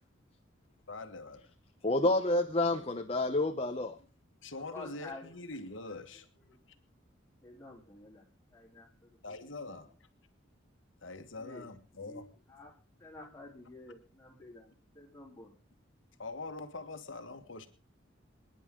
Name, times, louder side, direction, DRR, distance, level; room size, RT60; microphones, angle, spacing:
voice 1, 0.9-1.4 4.4-6.3 9.2-9.9 11.0-12.3 16.2-17.7, left 3 dB, 75° left, 7 dB, 1.6 m, -43 dB
voice 2, 1.8-3.9, left 2 dB, 30° left, 6 dB, 0.9 m, -29 dB
voice 3, 4.5-5.3 6.1-6.2 6.5-6.6 7.4-8.2 8.5-9.5 11.4-11.7 12.0-15.6, left 2 dB, 15° left, -2 dB, 3.7 m, -50 dB
27.0 x 10.0 x 3.8 m, 0.34 s
head